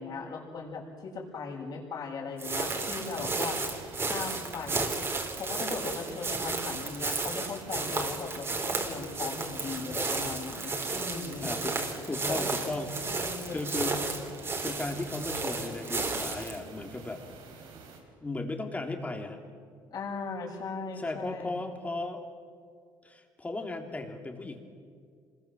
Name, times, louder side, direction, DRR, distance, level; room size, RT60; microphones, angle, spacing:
voice 1, 0.0-3.6 4.1-4.9 5.4-11.5 12.3-13.7 19.9-21.6, left 4 dB, 50° left, -2 dB, 7.2 m, -38 dB
sound 1, 2.4-16.6, right 3 dB, 30° right, 3.9 m, -33 dB
sound 2, 2.6-18.0, right 4 dB, 80° right, 5.1 m, -49 dB
voice 2, 11.4-13.1 13.5-17.2 18.2-19.4 21.0-22.2 23.0-24.6, left 2 dB, 15° left, 4 dB, 3.2 m, -36 dB
26.5 x 22.0 x 7.6 m, 2.1 s
cardioid pair, 95°, 8 cm